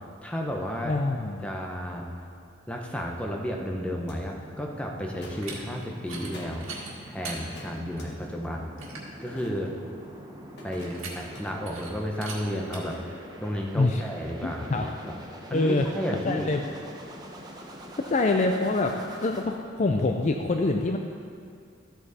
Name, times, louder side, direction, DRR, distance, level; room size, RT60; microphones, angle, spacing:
voice 1, 0.0-1.0 1.4-2.1 2.7-6.7 7.1-8.7 9.2-9.7 10.6-15.1 15.5-16.5, equal, 5° left, 0 dB, 0.9 m, -32 dB
voice 2, 0.8-1.5 13.8-14.0 14.4-14.8 15.5-15.9 16.1-16.6 18.0-18.9 19.2-21.0, left 2 dB, 35° left, 4 dB, 0.4 m, -25 dB
sound 1, 3.0-19.4, right 1 dB, 20° right, 0.9 m, -45 dB
sound 2, 4.1-4.2 5.2-5.5 6.3-6.6 7.5-8.1 9.3-9.8 10.6-11.4 12.7-13.0, left 1 dB, 55° left, 1.6 m, -45 dB
sound 3, 5.3-5.6 6.0-6.3 6.6-7.4 8.0-8.1 8.4-8.5 8.8-9.1 10.8-11.4 11.7-11.9 12.2-12.4 12.7-12.8, right 4 dB, 85° right, 1.8 m, -40 dB
13.0 x 7.8 x 4.2 m, 2.3 s
head